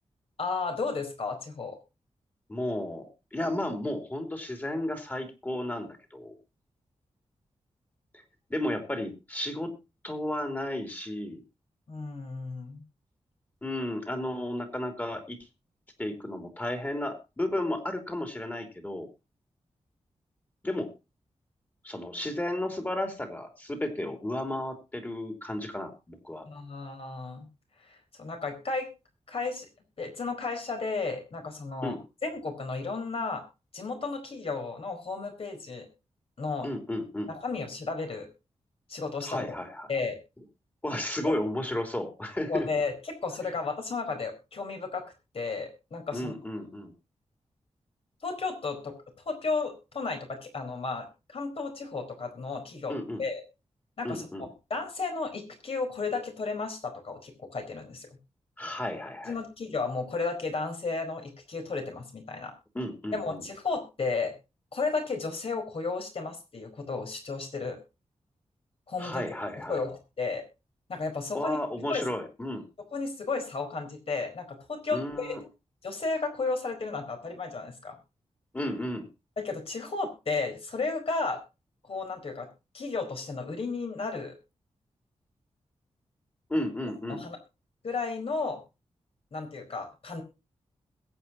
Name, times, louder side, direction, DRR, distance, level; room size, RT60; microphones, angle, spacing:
voice 1, 0.4-1.8 11.9-12.8 26.5-27.5 27.9-28.9 29.3-29.7 30.0-31.9 32.2-33.4 33.7-35.9 36.4-36.7 37.3-38.3 38.9-39.5 39.9-40.2 41.2-41.4 42.5-45.0 45.3-46.3 48.2-48.9 49.3-53.4 54.0-58.1 59.3-62.5 63.1-64.3 64.7-67.8 68.9-69.2 69.6-70.4 70.9-71.6 71.9-72.1 72.9-75.4 75.8-78.0 79.4-81.4 81.8-82.5 82.7-84.3 87.1-87.4 87.8-88.6 89.3-90.2, left 4 dB, 55° left, 5 dB, 4.6 m, -33 dB
voice 2, 2.5-6.4 8.5-9.8 10.0-11.4 13.6-15.4 16.0-19.1 20.6-20.9 21.8-26.4 31.8-32.0 36.6-37.3 39.2-39.9 40.8-42.7 46.1-46.9 52.9-53.2 54.0-54.5 58.6-59.3 62.7-63.4 69.0-69.8 71.3-72.6 74.9-75.4 78.5-79.1 86.5-87.2, left 1 dB, 15° left, 5 dB, 3.2 m, -33 dB
21.5 x 8.8 x 2.9 m, 0.28 s
wide cardioid pair, 130°, 12 cm